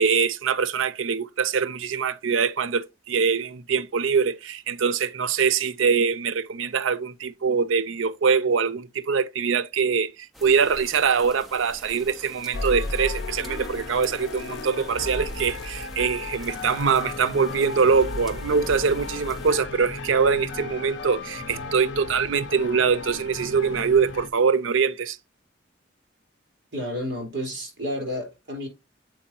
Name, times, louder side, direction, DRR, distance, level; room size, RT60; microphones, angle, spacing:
voice 1, 0.0-25.2, right 6 dB, 90° right, 0.5 m, -23 dB
summerrain dwith bg, 10.3-19.5, equal, ahead, 0.6 m, -46 dB
sound 1, 12.5-24.3, left 3 dB, 60° left, 0.6 m, -34 dB
voice 2, 26.7-28.7, equal, 65° right, 3.9 m, -31 dB
7.7 x 4.6 x 2.8 m
head